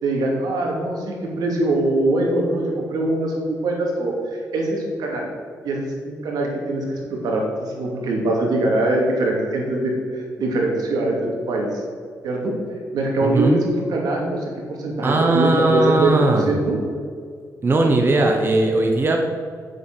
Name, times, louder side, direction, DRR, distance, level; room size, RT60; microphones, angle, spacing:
voice 1, 0.0-5.3 5.6-11.8 12.2-12.5 12.9-16.8, right 2 dB, 90° right, -1 dB, 2.6 m, -23 dB
voice 2, 13.2-13.6 15.0-16.5 17.6-19.2, right 2 dB, 35° right, 2 dB, 1.1 m, -18 dB
8.7 x 7.8 x 6.1 m, 2.1 s
cardioid pair, 115°, 7 cm